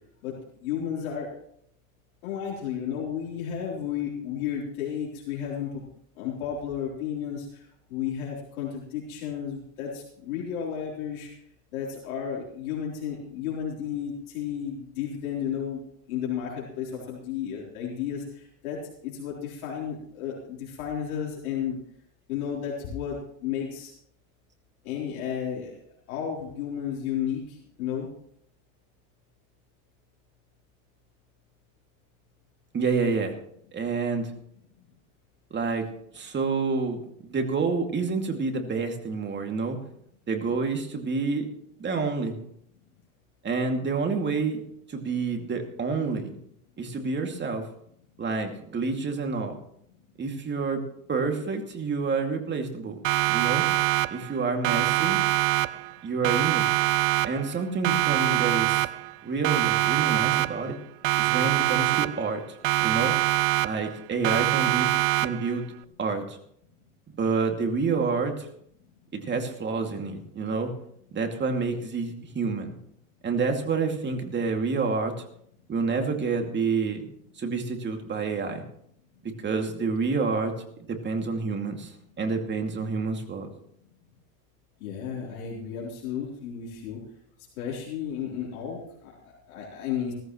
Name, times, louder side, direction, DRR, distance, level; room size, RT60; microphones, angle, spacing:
voice 1, 0.2-1.3 2.2-5.8 6.2-11.3 11.7-15.8 16.1-21.8 22.3-23.9 24.8-25.8 26.1-28.1 84.8-87.0 87.6-90.1, left 8 dB, 85° left, -4 dB, 3.8 m, -33 dB
voice 2, 32.7-33.4 33.7-34.3 35.5-35.9 36.1-39.8 40.3-41.5 41.8-42.4 43.4-44.6 44.9-46.3 46.8-47.7 48.2-49.5 50.2-50.8 51.1-53.0 53.3-53.7 54.1-55.2 56.0-56.7 57.2-58.9 59.2-60.8 61.2-62.4 62.8-63.1 63.6-64.9 65.2-65.6 66.0-66.4 67.2-68.5 69.1-70.7 71.1-72.7 73.2-75.2 75.7-77.0 77.4-78.6 79.2-80.6 80.9-83.5, right 4 dB, 25° right, 4 dB, 2.4 m, -28 dB
Siren, 53.0-54.4 54.6-56.0 56.2-57.6 57.8-59.2 59.4-60.8 61.0-62.4 62.6-64.0 64.2-65.6, right 21 dB, 50° right, 0.6 m, -24 dB
17.0 x 14.5 x 3.1 m, 0.68 s
supercardioid pair, 120°, 42 cm